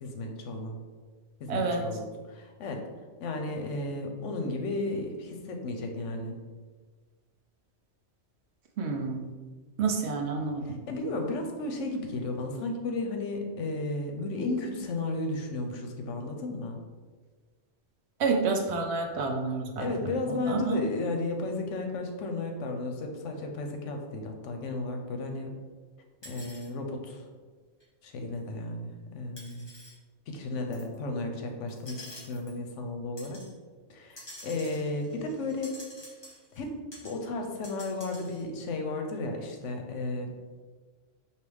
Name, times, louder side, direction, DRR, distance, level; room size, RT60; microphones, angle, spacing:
voice 1, 0.0-0.8 1.4-2.9 3.2-6.4 10.7-16.8 19.8-25.5 26.2-27.2 28.0-29.7 30.3-33.4 33.9-35.8 36.5-40.3, left 2 dB, 80° left, 3 dB, 1.0 m, -34 dB
voice 2, 1.5-1.9 8.8-9.2 9.8-10.8 18.2-19.9 20.3-20.8, right 4 dB, 65° right, 3 dB, 0.8 m, -29 dB
sound 1, 26.2-26.7 27.8-27.9 29.4-29.9 30.7-30.9 31.7-32.6 33.2-33.5 34.1-36.7 36.9-37.1 37.4-38.4, left 1 dB, 20° left, 1.2 m, -48 dB
4.7 x 2.8 x 3.4 m, 1.4 s
omnidirectional pair, 1.3 m